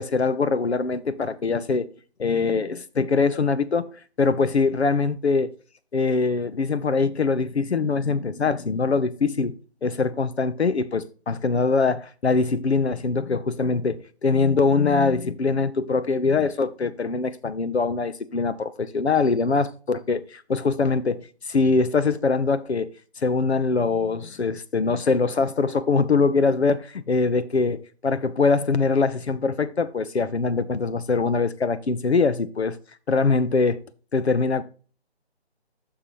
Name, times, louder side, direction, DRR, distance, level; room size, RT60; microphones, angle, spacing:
voice 1, 0.0-1.9 2.2-3.9 4.2-5.5 5.9-22.9 23.2-32.8 33.1-33.8 34.1-34.6, left 4 dB, 75° left, 0.9 m, -23 dB
9.8 x 6.0 x 3.1 m
figure-of-eight pair, 155°, 33 cm